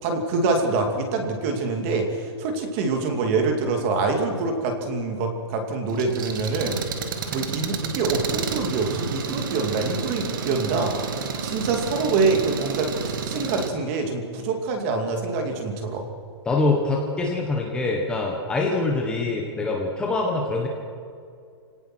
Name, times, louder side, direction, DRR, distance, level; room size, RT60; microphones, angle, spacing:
voice 1, 0.0-6.8 7.3-10.9 11.4-12.9 13.3-16.1, right 3 dB, 25° right, 4 dB, 2.6 m, -25 dB
Engine, 5.9-13.7, right 5 dB, 45° right, 2.2 m, -30 dB
voice 2, 16.4-20.7, left 3 dB, 5° left, -1 dB, 1.4 m, -24 dB
29.0 x 18.0 x 6.2 m, 2.3 s
hypercardioid pair, 175°, 15 cm